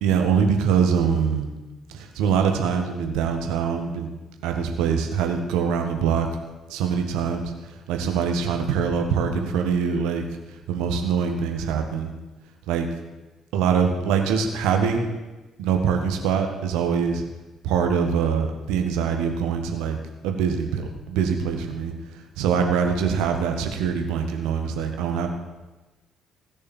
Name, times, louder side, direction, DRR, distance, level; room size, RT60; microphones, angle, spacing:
voice 1, 0.0-1.5 1.9-4.1 4.4-6.3 6.7-7.5 7.9-10.2 10.7-12.1 12.7-12.9 13.5-15.1 15.6-17.2 17.6-20.0 20.2-21.9 22.4-25.3, right 6 dB, 65° right, 4 dB, 1.6 m, -23 dB
17.0 x 6.6 x 7.2 m, 1.1 s
figure-of-eight pair, 45°, 0 cm